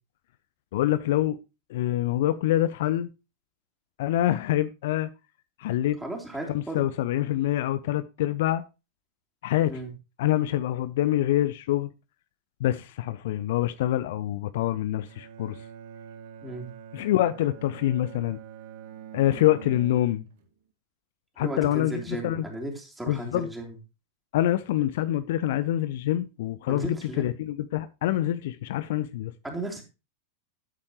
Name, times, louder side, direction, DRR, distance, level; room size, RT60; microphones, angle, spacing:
voice 1, 0.7-1.4 1.7-3.1 4.0-5.1 5.6-6.0 6.5-8.6 9.4-9.7 10.2-11.9 12.6-15.6 16.9-18.4 19.1-20.2 21.4-22.4 23.1-23.5 24.3-29.3, left 13 dB, 55° left, 0.6 m, -26 dB
voice 2, 6.0-6.8 9.7-9.9 16.4-16.7 21.4-23.8 26.7-27.3 29.4-29.8, right 2 dB, 5° right, 3.5 m, -35 dB
Bowed string instrument, 15.1-20.5, right 9 dB, 55° right, 1.5 m, -45 dB
12.5 x 8.6 x 3.1 m
figure-of-eight pair, 90°, 0 cm